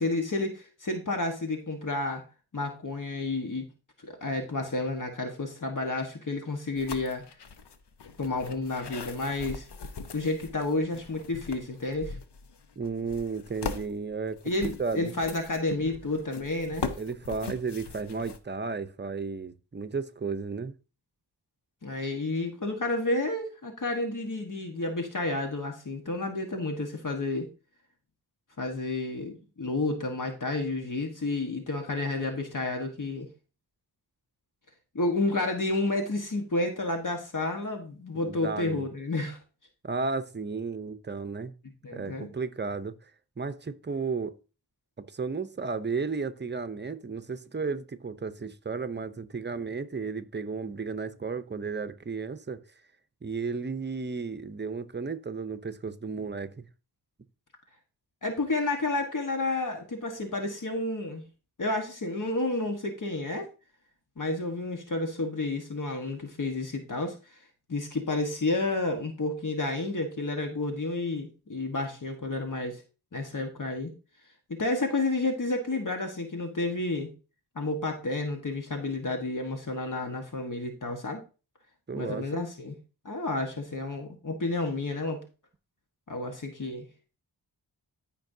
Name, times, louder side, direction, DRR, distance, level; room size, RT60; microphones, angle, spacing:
voice 1, 0.0-2.2 2.5-3.6 4.0-7.2 8.2-9.7 10.1-12.2 14.4-16.9 21.8-27.5 28.6-33.3 34.9-39.4 41.8-42.3 58.2-61.2 61.6-63.5 64.2-67.4 67.7-72.8 73.1-73.9 74.5-77.1 77.5-81.2 81.9-82.7 83.0-85.2 86.1-86.8, left 2 dB, 50° left, 1.4 m, -30 dB
sound 1, 6.8-18.4, left 5 dB, 90° left, 0.9 m, -40 dB
voice 2, 12.8-14.4 14.8-15.1 17.0-20.7 38.1-38.8 39.8-41.5 41.9-43.1 43.4-44.3 45.1-52.6 53.2-56.7 81.9-82.4, right 4 dB, 25° right, 0.7 m, -33 dB
14.0 x 5.3 x 2.7 m
wide cardioid pair, 80°, 39 cm